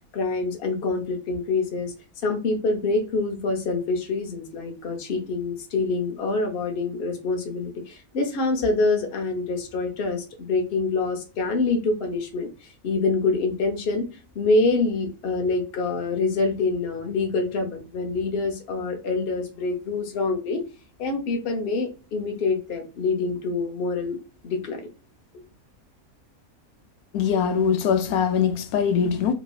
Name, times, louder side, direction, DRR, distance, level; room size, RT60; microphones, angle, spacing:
voice 1, 0.1-1.9 2.2-14.0 14.3-20.6 21.0-24.2 24.4-24.9, left 3 dB, 50° left, 0.8 m, -26 dB
voice 2, 27.1-29.3, left 7 dB, 90° left, 1.1 m, -22 dB
3.0 x 2.6 x 2.3 m
omnidirectional pair, 1.5 m